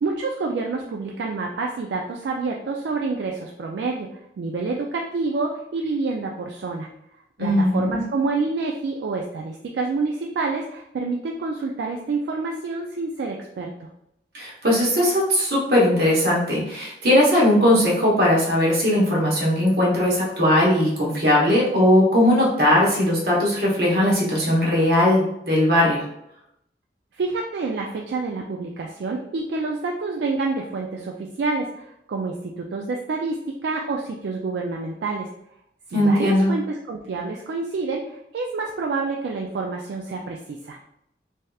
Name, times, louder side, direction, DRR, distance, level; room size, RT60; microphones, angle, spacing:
voice 1, 0.0-6.9 7.4-13.9 27.1-35.3 35.9-40.8, right 3 dB, 75° right, 1 dB, 0.3 m, -28 dB
voice 2, 7.4-8.0 14.3-26.1 35.9-36.5, left 1 dB, 60° right, -4 dB, 1.0 m, -19 dB
3.3 x 2.8 x 2.3 m, 0.80 s
head